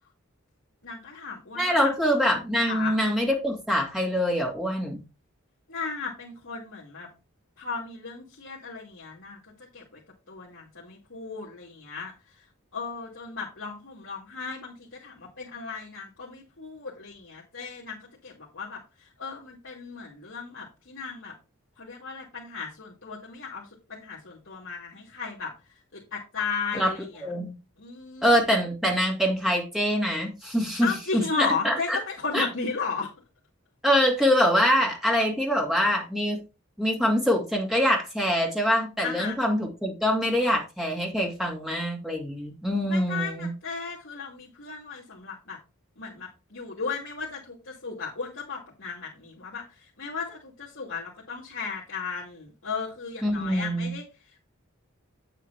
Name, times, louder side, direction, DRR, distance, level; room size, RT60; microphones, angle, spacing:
voice 1, 0.8-1.9 2.7-2.9 5.7-7.1 7.6-10.0 10.3-12.5 12.7-21.3 21.8-25.5 25.9-27.3 27.8-28.4 30.8-33.1 39.0-39.4 42.9-45.6 46.0-54.4, left 5 dB, 65° left, -5 dB, 2.5 m, -35 dB
voice 2, 1.6-5.0 26.7-26.9 27.2-27.5 28.2-30.9 31.4-32.0 32.3-32.5 33.8-36.4 36.8-43.5 53.2-53.9, equal, ahead, -1 dB, 2.4 m, -24 dB
8.8 x 8.1 x 2.9 m, 0.30 s
head